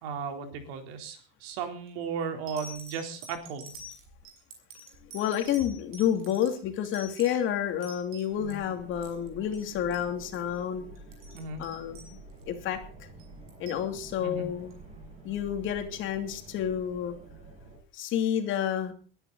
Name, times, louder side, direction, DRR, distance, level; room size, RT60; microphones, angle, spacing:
voice 1, 0.0-3.7 8.4-8.6 11.3-11.7 14.2-14.5, right 6 dB, 80° right, 6 dB, 4.0 m, -36 dB
sound 1, 1.6-1.9 2.5-8.6 8.9-9.3 9.5-9.7 9.9-10.1 10.3-10.5 11.0-12.6 13.2-13.8 14.7-14.8, right 1 dB, 45° right, 6.4 m, -48 dB
voice 2, 5.1-10.8 11.6-12.2 12.5-12.8 13.6-14.8 15.2-17.1 17.9-18.9, left 9 dB, 40° left, 6 dB, 2.9 m, -29 dB
sound 2, 8.3-17.8, right 2 dB, 20° right, 7.0 m, -49 dB
21.5 x 11.0 x 4.1 m, 0.41 s
cardioid pair, 170°, 30 cm